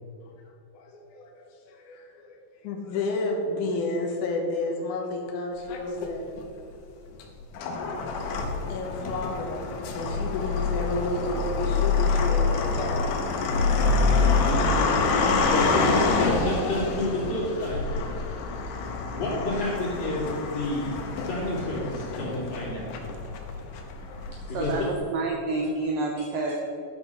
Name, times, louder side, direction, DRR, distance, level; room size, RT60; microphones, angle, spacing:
voice 1, 0.7-2.4 2.6-6.3 8.7-13.2 14.0-14.3 14.6-15.5, left 2 dB, 70° left, 0 dB, 2.0 m, -32 dB
sound 1, 5.7-6.4 7.2-24.9, left 4 dB, 90° left, 3.4 m, -26 dB
voice 2, 15.5-17.8 18.5-18.6 19.0-20.3 20.5-22.9 24.5-24.7, left 1 dB, 40° left, -6 dB, 3.6 m, -29 dB
voice 3, 24.5-26.6, right 3 dB, 85° right, 0 dB, 2.0 m, -29 dB
11.5 x 5.9 x 6.5 m, 2.4 s
omnidirectional pair, 5.2 m